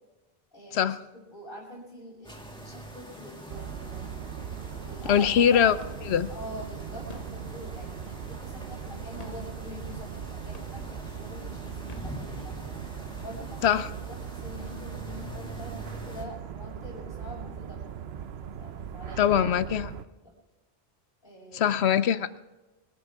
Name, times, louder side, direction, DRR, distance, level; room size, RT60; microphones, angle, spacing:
voice 1, 0.5-4.2 4.8-5.7 6.3-12.7 13.2-17.8 18.5-19.3 20.2-20.3 21.2-21.7, equal, 60° left, -9 dB, 6.6 m, -45 dB
sound 1, 2.2-16.2, equal, 5° left, 2.3 m, -45 dB
sound 2, 3.5-20.0, right 8 dB, 75° right, 1.0 m, -39 dB
sound 3, 4.4-4.9 5.2-6.3 6.9-8.7 9.1-10.2 10.5-11.1 11.7-12.7 13.2-13.3 13.6-14.5, left 2 dB, 40° left, 1.3 m, -50 dB
voice 2, 5.1-5.8 6.0-6.3 13.6-13.9 19.2-19.9 21.5-22.4, left 9 dB, 80° left, 14 dB, 1.0 m, -22 dB
26.0 x 12.5 x 3.6 m, 1.1 s
omnidirectional pair, 1.1 m